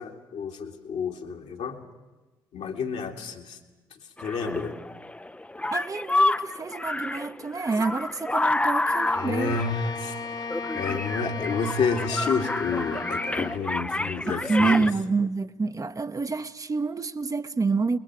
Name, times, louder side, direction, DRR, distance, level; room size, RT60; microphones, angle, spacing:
voice 1, 0.0-1.8 2.5-3.6 4.2-4.7 9.1-10.4 10.7-14.9, left 5 dB, 65° left, 2.4 m, -30 dB
sound 1, 4.2-14.9, left 2 dB, 10° left, 0.6 m, -29 dB
voice 2, 5.7-9.6 14.3-18.0, right 4 dB, 30° right, 0.9 m, -27 dB
Bowed string instrument, 8.8-13.7, left 4 dB, 30° left, 0.9 m, -36 dB
28.0 x 21.5 x 4.9 m
hypercardioid pair, 45°, 12 cm